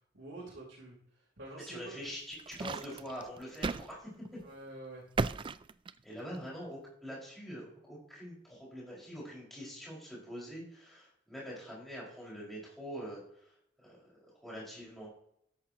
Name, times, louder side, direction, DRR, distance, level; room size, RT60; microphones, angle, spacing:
voice 1, 0.1-2.0 4.4-5.0, right 2 dB, 75° right, -6 dB, 4.1 m, -48 dB
voice 2, 1.7-4.4 6.0-13.5 13.8-14.1 14.4-15.1, equal, ahead, -6 dB, 5.3 m, -44 dB
sound 1, 2.1-3.9 4.2-4.4 5.2-6.4, right 4 dB, 25° right, 0.3 m, -35 dB
13.0 x 10.5 x 3.0 m, 0.69 s
head